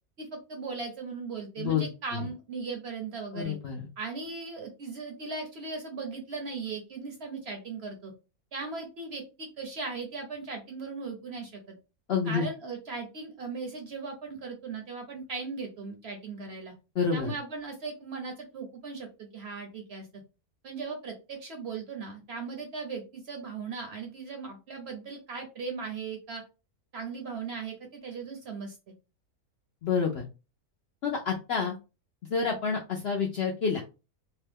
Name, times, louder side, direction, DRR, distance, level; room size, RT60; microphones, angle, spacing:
voice 1, 0.2-3.6 4.0-8.1 8.5-11.8 12.3-16.7 17.1-20.1 20.6-26.4 26.9-28.9, right 4 dB, 55° right, 3 dB, 0.8 m, -38 dB
voice 2, 3.3-3.9 12.1-12.5 17.0-17.3 29.8-30.2 31.0-31.7 32.3-33.8, left 6 dB, 65° left, 0 dB, 0.6 m, -28 dB
2.9 x 2.2 x 3.3 m, 0.30 s
omnidirectional pair, 1.6 m